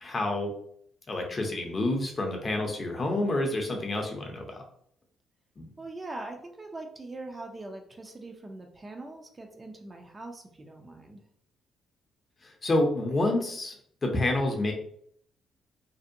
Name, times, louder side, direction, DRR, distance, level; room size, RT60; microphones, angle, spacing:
voice 1, 0.0-0.5 1.1-4.6 5.6-5.7 12.4-13.7 14.0-14.7, left 2 dB, 35° left, 2 dB, 0.6 m, -28 dB
voice 2, 5.8-11.2, right 2 dB, 25° right, 3 dB, 0.4 m, -42 dB
2.6 x 2.1 x 2.5 m, 0.65 s
cardioid pair, 90°, 0 cm